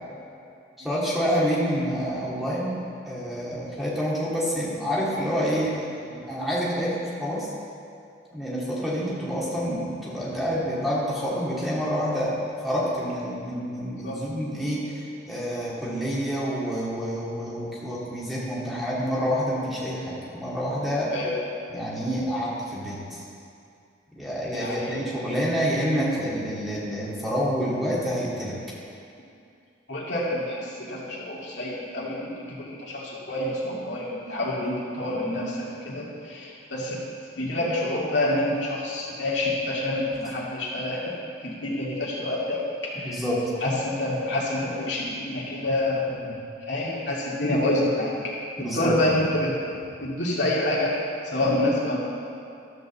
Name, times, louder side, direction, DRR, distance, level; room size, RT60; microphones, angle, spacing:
voice 1, 0.8-2.7 3.0-5.7 6.1-7.5 8.3-12.4 12.6-21.1 21.7-23.2 24.2-28.5 43.0-43.4 46.2-46.3 48.6-48.9 51.4-51.5, equal, ahead, -8 dB, 2.1 m, -28 dB
voice 2, 24.5-25.0 29.9-37.0 37.4-41.1 41.4-42.6 42.9-43.2 43.6-46.2 46.7-48.1 48.7-49.5 50.0-52.0, left 1 dB, 65° left, -6 dB, 2.4 m, -27 dB
13.0 x 5.3 x 7.0 m, 2.5 s
head